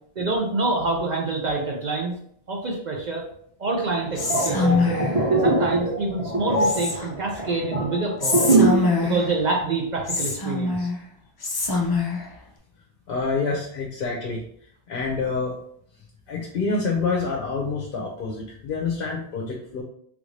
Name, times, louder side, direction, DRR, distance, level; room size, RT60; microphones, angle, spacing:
voice 1, 0.2-2.1 2.5-3.2 3.6-4.9 5.3-8.6 9.0-10.9, right 3 dB, 50° right, 0 dB, 0.6 m, -26 dB
sound 1, 4.0-8.9 9.2-9.4, right 2 dB, 75° right, 1.5 m, -22 dB
Whispering, 4.2-5.3 6.6-7.3 8.2-9.4 10.1-11.0 11.4-12.3, left 3 dB, 40° left, 0.3 m, -24 dB
voice 2, 13.1-14.4 14.9-15.6 16.3-19.8, left 4 dB, 65° left, -1 dB, 0.7 m, -27 dB
3.3 x 2.5 x 3.2 m, 0.66 s
omnidirectional pair, 1.0 m